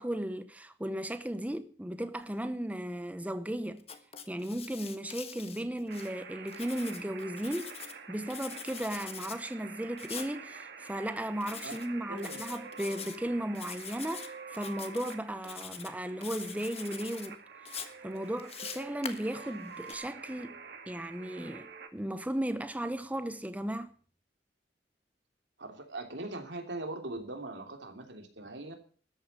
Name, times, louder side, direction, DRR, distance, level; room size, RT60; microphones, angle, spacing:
voice 1, 0.0-3.8 4.3-7.7 8.1-17.4 17.7-23.9, right 1 dB, 10° right, 0.8 m, -36 dB
Writing, 3.8-6.1 6.5-8.0 8.3-9.4 10.0-10.3 11.4-11.9 12.2-13.2 13.5-14.3 14.5-15.1 15.4-15.9 16.2-17.3 17.7-19.9, left 7 dB, 35° left, 1.4 m, -44 dB
sound 1, 5.9-21.9, right 5 dB, 65° right, 1.9 m, -48 dB
voice 2, 12.1-12.4 25.6-28.7, right 2 dB, 85° right, 3.1 m, -40 dB
13.5 x 8.6 x 8.3 m
head